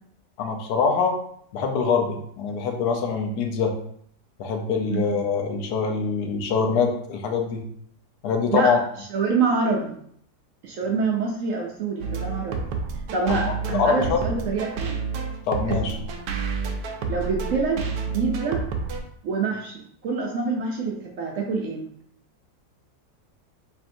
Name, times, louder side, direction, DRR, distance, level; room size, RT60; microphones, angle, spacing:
voice 1, 0.4-1.2 1.5-3.8 4.4-7.6 8.2-8.8 13.3-14.2 15.5-16.0, left 5 dB, 75° left, 2 dB, 1.2 m, -24 dB
voice 2, 9.1-9.9 10.6-12.6 13.1-15.0 15.7-15.8 17.1-18.6 19.2-21.8, right 4 dB, 65° right, 0 dB, 0.8 m, -26 dB
sound 1, 12.0-19.0, right 5 dB, 85° right, 1.2 m, -29 dB
4.3 x 3.4 x 2.6 m, 0.66 s
omnidirectional pair, 1.7 m